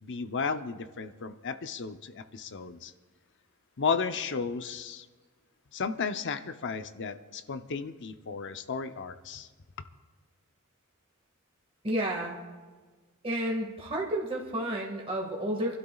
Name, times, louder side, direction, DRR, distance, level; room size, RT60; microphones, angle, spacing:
voice 1, 0.0-2.9 3.8-5.1 5.7-9.5, left 5 dB, 55° left, 9 dB, 0.7 m, -34 dB
voice 2, 11.8-12.4 13.2-15.8, right 1 dB, 25° right, -2 dB, 1.9 m, -31 dB
28.5 x 12.5 x 2.4 m, 1.4 s
head